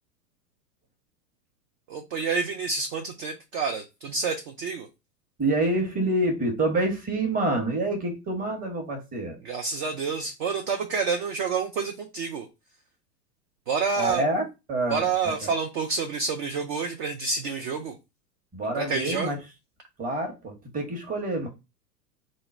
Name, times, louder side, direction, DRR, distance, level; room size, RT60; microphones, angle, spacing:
voice 1, 1.9-4.9 9.4-12.5 13.7-14.2 14.9-18.0 18.7-19.3, right 5 dB, 35° right, 0.4 m, -28 dB
voice 2, 5.4-9.4 14.0-15.0 18.5-19.4 20.0-21.5, right 2 dB, 15° right, 0.9 m, -27 dB
3.7 x 2.1 x 4.1 m
figure-of-eight pair, 100°, 50 cm